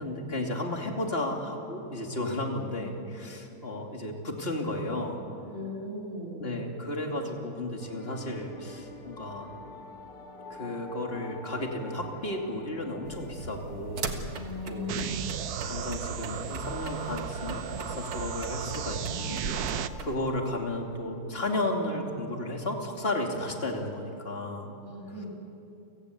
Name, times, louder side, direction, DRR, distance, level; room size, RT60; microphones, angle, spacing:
voice 1, 0.0-5.2 6.4-9.5 10.5-14.2 14.6-15.0 15.6-19.4 20.0-24.8, left 1 dB, 25° left, 1 dB, 2.8 m, -33 dB
voice 2, 5.5-6.5 14.3-15.2 24.8-25.3, left 2 dB, 30° right, -2 dB, 7.1 m, -38 dB
Emotional Music, 7.8-20.9, left 3 dB, 60° left, 2.5 m, -47 dB
sound 1, 13.0-20.2, right 4 dB, 80° right, 2.4 m, -40 dB
sound 2, 14.9-19.9, right 8 dB, 60° right, 1.1 m, -34 dB
30.0 x 18.0 x 8.3 m, 2.8 s
omnidirectional pair, 2.3 m